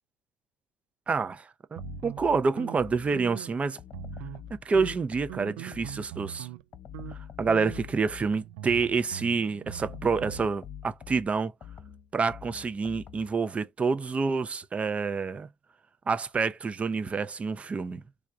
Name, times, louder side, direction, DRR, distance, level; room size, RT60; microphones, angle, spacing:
voice 1, 1.1-3.8 4.5-6.5 7.1-11.5 12.1-15.5 16.1-18.0, right 4 dB, 30° right, 0.6 m, -28 dB
sound 1, 1.8-3.3 3.8-6.3 6.7-9.2 9.7-13.4, left 9 dB, 45° left, 0.6 m, -45 dB
sound 2, 1.8-3.6 3.9-4.5 4.8-6.6 6.9-7.2 7.5-10.5, right 14 dB, 85° right, 0.3 m, -42 dB
3.4 x 2.3 x 3.6 m
supercardioid pair, 70°, 4 cm